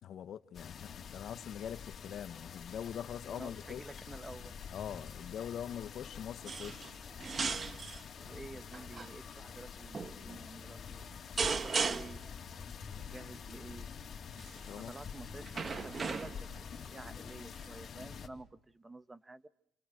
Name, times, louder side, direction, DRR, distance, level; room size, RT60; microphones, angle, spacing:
voice 1, 0.0-3.9 4.7-7.0 14.7-14.9, left 9 dB, 70° left, 1.1 m, -43 dB
sound 1, 0.5-18.3, left 6 dB, 50° left, 3.4 m, -47 dB
voice 2, 3.3-4.6 8.2-11.1 11.6-12.2 13.0-13.9 14.7-16.5 16.8-19.5, right 2 dB, 20° right, 1.3 m, -50 dB
sound 2, 6.5-6.9 7.2-8.0 8.7-9.1 9.9-10.2 11.4-12.3 14.4-14.7 15.5-16.6 17.6-17.7, right 5 dB, 40° right, 1.4 m, -36 dB
29.0 x 29.0 x 6.4 m
cardioid pair, 90°, 0 cm